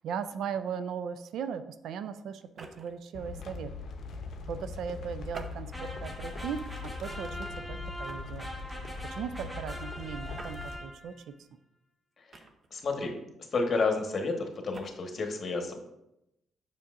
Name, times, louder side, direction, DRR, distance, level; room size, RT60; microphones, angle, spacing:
voice 1, 0.0-3.7 4.5-8.5 8.8-8.9 9.1-11.2, right 7 dB, 75° right, 12 dB, 0.4 m, -38 dB
sound 1, 2.4-3.1 5.3-6.1 6.7-6.9 8.1-8.4 10.3-10.6 12.3-12.9 14.5-14.9, right 3 dB, 40° right, 0.7 m, -48 dB
sound 2, 3.1-10.8, left 4 dB, 65° left, 0.7 m, -41 dB
sound 3, 5.7-11.2, equal, 10° right, 1.4 m, -42 dB
voice 2, 12.7-13.1 13.5-15.7, left 3 dB, 45° left, 3 dB, 1.2 m, -30 dB
7.0 x 5.9 x 2.5 m, 0.85 s
cardioid pair, 90°, 0 cm